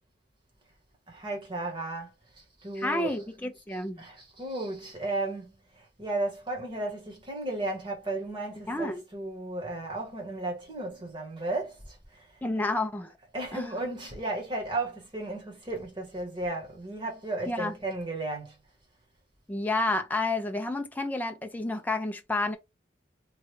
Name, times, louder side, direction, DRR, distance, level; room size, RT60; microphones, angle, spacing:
voice 1, 1.1-3.2 3.7-12.3 13.3-18.6, right 2 dB, 25° right, 1.2 m, -34 dB
voice 2, 2.8-4.0 8.7-9.0 12.4-13.1 13.5-13.7 17.5-17.8 19.5-22.6, left 2 dB, 10° left, 0.4 m, -30 dB
3.1 x 2.4 x 3.1 m
head